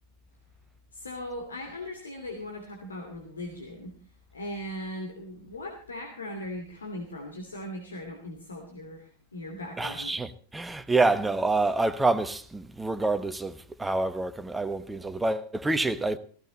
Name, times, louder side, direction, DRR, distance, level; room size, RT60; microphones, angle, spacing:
voice 1, 0.9-3.9 4.3-10.2, left 1 dB, 75° left, 2.8 m, -39 dB
voice 2, 9.8-16.2, right 2 dB, 10° right, 1.1 m, -27 dB
16.0 x 16.0 x 4.1 m
figure-of-eight pair, 90°, 0 cm